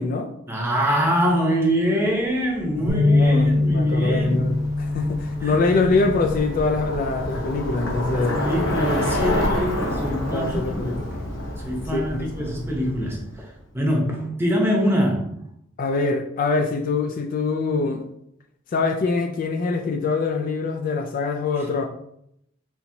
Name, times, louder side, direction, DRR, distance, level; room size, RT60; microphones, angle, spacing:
voice 1, 0.5-4.4 5.4-5.6 8.1-11.2 11.6-15.4 21.6-21.7, equal, 10° right, -1 dB, 0.8 m, -24 dB
Bicycle, 2.5-13.4, left 1 dB, 70° left, 0.8 m, -29 dB
voice 2, 2.8-8.4 10.3-10.9 11.9-12.5 15.8-18.1 18.7-21.8, left 3 dB, 45° left, 4 dB, 0.3 m, -24 dB
sound 1, 2.9-9.1, left 2 dB, 35° right, 0.5 m, -24 dB
4.3 x 2.7 x 2.7 m, 0.75 s
head